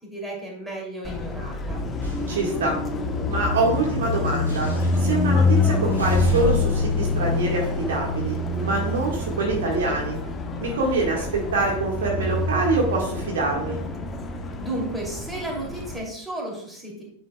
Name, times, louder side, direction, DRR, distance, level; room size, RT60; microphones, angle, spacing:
voice 1, 0.0-1.8 14.6-17.0, right 1 dB, 10° right, -2 dB, 2.7 m, -33 dB
Car passing by, 1.0-16.0, left 3 dB, 20° left, 0.9 m, -26 dB
sound 1, 2.0-2.3 4.4-5.2 5.9-8.5, left 4 dB, 90° right, 2.8 m, -32 dB
voice 2, 2.3-2.8 3.3-4.7 5.0-10.2 10.6-11.3 11.5-13.8, right 2 dB, 60° right, -1 dB, 1.5 m, -25 dB
9.3 x 6.2 x 2.2 m, 0.65 s
figure-of-eight pair, 90°, 0 cm